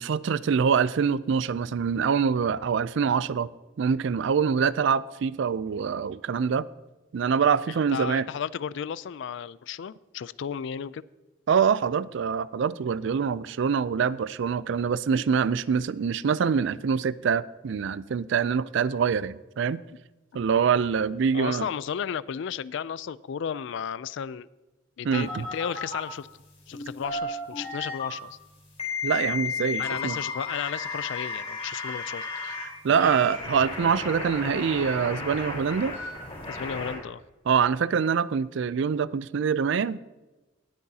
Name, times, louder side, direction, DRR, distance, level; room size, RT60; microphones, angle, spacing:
voice 1, 0.0-3.5 3.8-6.7 7.1-8.3 11.5-19.8 20.3-21.7 25.0-25.4 29.0-30.2 32.6-36.0 37.5-40.0, right 6 dB, 65° right, 0.4 m, -25 dB
voice 2, 7.9-11.0 21.3-24.5 25.0-26.3 26.7-28.4 29.8-32.2 36.5-37.2, left 7 dB, 65° left, 0.4 m, -34 dB
sound 1, 25.1-26.0 26.7-28.1 28.8-32.6 32.9-36.9, left 4 dB, 30° left, 4.0 m, -34 dB
19.5 x 8.6 x 2.8 m
head